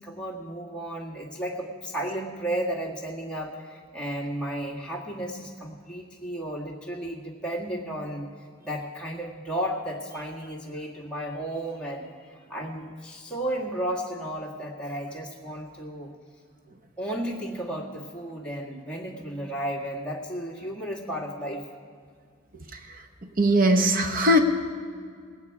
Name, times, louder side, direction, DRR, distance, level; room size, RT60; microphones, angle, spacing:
voice 1, 0.0-8.3 8.6-16.1 17.0-21.7, right 1 dB, 5° left, -5 dB, 2.0 m, -33 dB
voice 2, 22.7-23.0 23.4-24.4, equal, 45° right, 6 dB, 1.0 m, -21 dB
20.0 x 9.0 x 4.8 m, 2.1 s
head